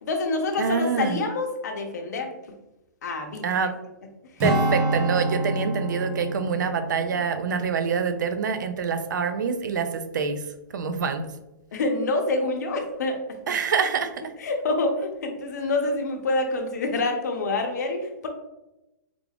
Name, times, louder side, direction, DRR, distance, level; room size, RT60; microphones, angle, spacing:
voice 1, 0.0-2.3 3.0-3.5 11.7-13.2 14.4-18.3, left 2 dB, 60° left, 3 dB, 0.7 m, -26 dB
voice 2, 0.6-1.2 3.4-3.7 4.4-10.4 10.7-11.3 13.5-14.3, right 6 dB, 75° right, 9 dB, 0.4 m, -26 dB
Strum, 4.4-9.1 9.5-9.7, right 1 dB, 20° right, 0.5 m, -29 dB
3.6 x 2.3 x 3.3 m, 0.95 s
hypercardioid pair, 180°, 10 cm